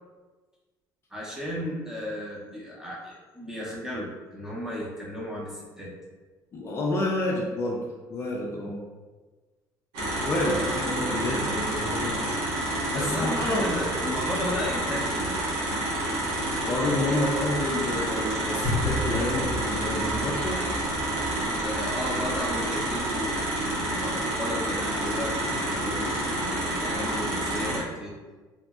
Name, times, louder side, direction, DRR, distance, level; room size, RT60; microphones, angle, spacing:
voice 1, 1.1-5.9 10.4-11.7 12.9-15.4 21.6-28.1, equal, 5° right, -5 dB, 0.6 m, -34 dB
voice 2, 6.5-7.8 8.1-8.9 10.3-12.4 12.9-13.7 16.5-20.6, left 2 dB, 35° left, -3 dB, 0.4 m, -29 dB
sound 1, 9.9-27.8, right 1 dB, 90° right, 0.9 m, -29 dB
sound 2, 18.6-23.1 23.4-23.5, left 1 dB, 55° right, 0.7 m, -34 dB
2.9 x 2.5 x 2.3 m, 1.3 s
cardioid pair, 145°, 8 cm